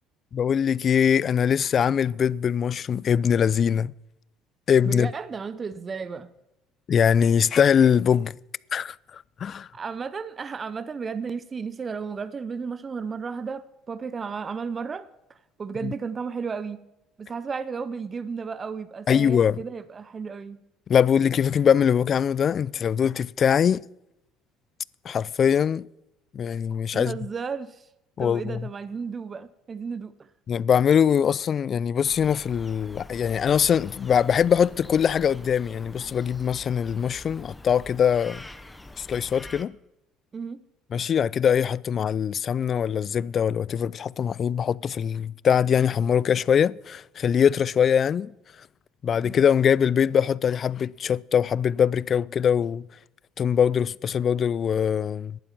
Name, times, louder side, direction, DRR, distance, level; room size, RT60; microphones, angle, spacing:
voice 1, 0.3-3.9 4.7-5.1 6.9-8.3 8.7-9.7 15.8-15.9 19.1-19.6 20.9-23.8 25.1-25.9 26.3-27.2 28.2-28.6 30.5-38.4 39.0-39.8 40.9-48.3 49.0-52.8 53.4-55.4, left 8 dB, 45° left, 0.3 m, -22 dB
voice 2, 4.8-6.3 9.7-16.8 17.2-20.6 26.9-27.9 28.2-30.3 40.3-40.6 49.1-49.4, right 5 dB, 35° right, 0.6 m, -34 dB
sound 1, 32.0-39.6, left 2 dB, 10° left, 0.9 m, -45 dB
11.5 x 8.7 x 7.1 m
supercardioid pair, 80°, 0 cm